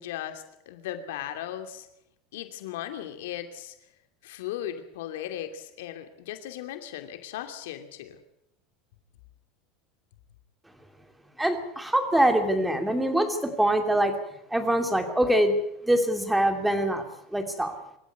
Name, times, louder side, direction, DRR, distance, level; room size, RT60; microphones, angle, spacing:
voice 1, 0.0-1.9 2.3-3.7 4.2-8.2, left 11 dB, 85° left, 7 dB, 2.7 m, -37 dB
voice 2, 11.4-14.2 14.5-15.5 15.8-17.1 17.3-17.7, right 1 dB, 5° right, 5 dB, 2.6 m, -24 dB
26.0 x 13.5 x 9.4 m, 0.78 s
supercardioid pair, 170°, 0 cm